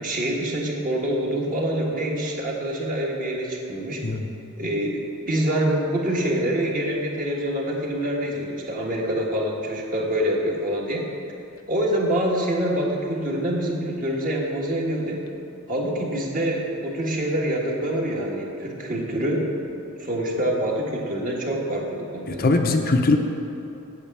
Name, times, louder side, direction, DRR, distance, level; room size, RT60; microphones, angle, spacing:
voice 1, 0.0-4.0 4.6-11.1 11.7-15.2 15.7-19.5 20.0-22.4, right 1 dB, 40° right, -1 dB, 1.5 m, -26 dB
voice 2, 22.3-23.2, left 3 dB, 45° left, 4 dB, 0.6 m, -20 dB
8.5 x 6.7 x 8.4 m, 2.9 s
head